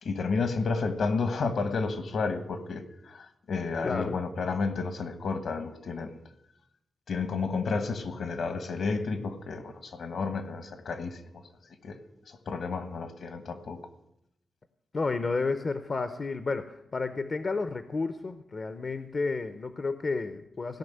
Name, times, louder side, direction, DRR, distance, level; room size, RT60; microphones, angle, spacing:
voice 1, 0.0-6.2 7.1-11.4 11.8-12.0 12.3-13.8, left 4 dB, 65° left, 10 dB, 1.4 m, -31 dB
voice 2, 3.8-4.2 14.9-20.8, left 3 dB, 40° left, 10 dB, 0.7 m, -31 dB
17.0 x 5.9 x 9.2 m, 0.80 s
wide cardioid pair, 150°, 0 cm